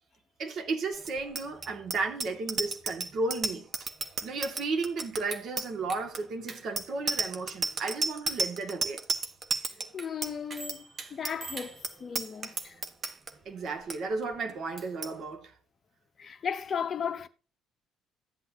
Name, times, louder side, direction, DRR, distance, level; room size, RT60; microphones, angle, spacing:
voice 1, 0.4-3.7 4.2-9.0 13.5-15.5, right 3 dB, 55° right, 2.2 m, -34 dB
Bicycle bell, 1.0-13.3 13.7-14.0 14.2-14.5 14.8-15.1, right 3 dB, 40° right, 1.4 m, -33 dB
voice 2, 9.9-12.8 16.2-17.3, left 7 dB, 40° left, 0.7 m, -35 dB
13.0 x 8.3 x 2.8 m
cardioid pair, 90°, 0 cm